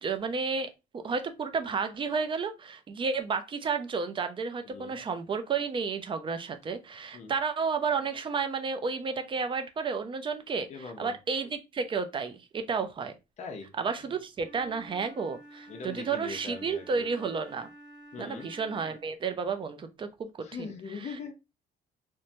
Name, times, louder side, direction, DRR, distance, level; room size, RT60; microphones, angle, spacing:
voice 1, 0.0-10.7 11.0-13.1 13.8-17.7 18.2-20.3 20.6-20.7, right 5 dB, 30° right, 0.5 m, -32 dB
voice 2, 4.6-5.0 7.1-7.3 10.7-11.2 13.4-13.7 15.7-17.0 18.1-18.5 20.4-21.3, left 5 dB, 40° left, 0.6 m, -41 dB
Wind instrument woodwind instrument, 14.3-19.2, right 1 dB, 5° right, 1.0 m, -51 dB
3.0 x 2.1 x 2.6 m
cardioid pair, 110°, 17 cm